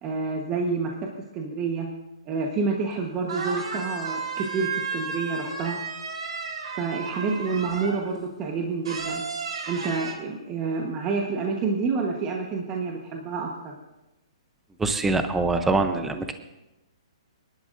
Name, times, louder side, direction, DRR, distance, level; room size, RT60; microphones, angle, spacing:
voice 1, 0.0-0.9 1.3-1.9 2.3-5.8 6.7-9.2 9.7-13.7, right 4 dB, 20° right, 0 dB, 1.1 m, -28 dB
sound 1, 2.9-3.0 3.3-8.1 8.8-10.1, right 5 dB, 80° right, 3.9 m, -33 dB
voice 2, 14.8-16.3, right 3 dB, 5° right, 7 dB, 0.6 m, -24 dB
26.0 x 11.5 x 2.6 m, 0.99 s
hypercardioid pair, 160°, 3 cm